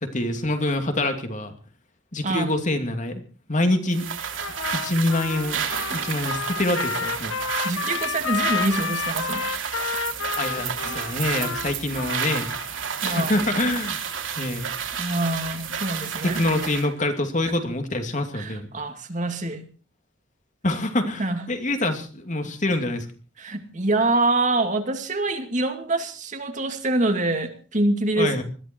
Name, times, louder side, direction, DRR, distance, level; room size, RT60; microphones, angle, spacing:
voice 1, 0.0-1.5 2.1-3.1 3.5-4.1 4.7-5.6 5.9-7.3 10.3-12.5 13.0-14.0 14.4-14.7 16.2-18.7 20.6-23.1 28.2-28.4, left 1 dB, 40° left, 6 dB, 2.7 m, -25 dB
sound 1, 3.9-16.9, right 7 dB, 75° right, 3.2 m, -31 dB
Trumpet, 4.4-12.7, left 6 dB, 90° left, 1.2 m, -31 dB
voice 2, 7.6-9.4 10.9-11.0 13.0-13.3 15.0-16.4 18.3-19.6 21.2-21.4 23.4-28.4, right 2 dB, 40° right, 6 dB, 2.5 m, -25 dB
21.5 x 14.5 x 4.6 m, 0.38 s
head